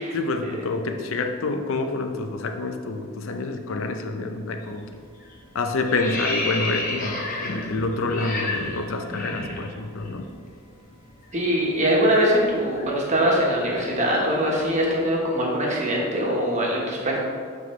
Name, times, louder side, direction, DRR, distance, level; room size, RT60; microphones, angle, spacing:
voice 1, 0.1-5.0 5.5-10.3, left 3 dB, 70° left, 6 dB, 0.5 m, -28 dB
sound 1, 4.6-4.9 5.2-10.1 10.4-10.6 10.9-15.0, left 2 dB, 40° left, 0.8 m, -32 dB
voice 2, 11.3-17.2, equal, 35° right, -3 dB, 1.1 m, -22 dB
9.3 x 3.6 x 3.2 m, 2.1 s
head